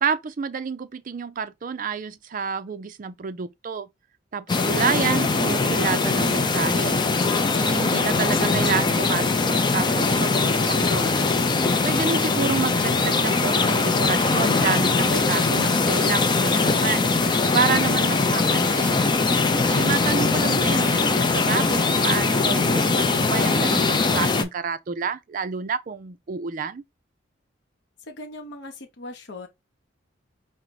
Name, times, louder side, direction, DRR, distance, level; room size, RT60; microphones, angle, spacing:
voice 1, 0.0-3.9 4.3-7.0 7.5-11.3 11.8-19.0 19.7-26.8, right 6 dB, 45° right, 0.4 m, -29 dB
sound 1, 4.5-24.4, left 3 dB, 25° left, 0.5 m, -21 dB
voice 2, 28.1-29.5, left 1 dB, 65° left, 0.8 m, -39 dB
4.5 x 2.1 x 4.0 m
head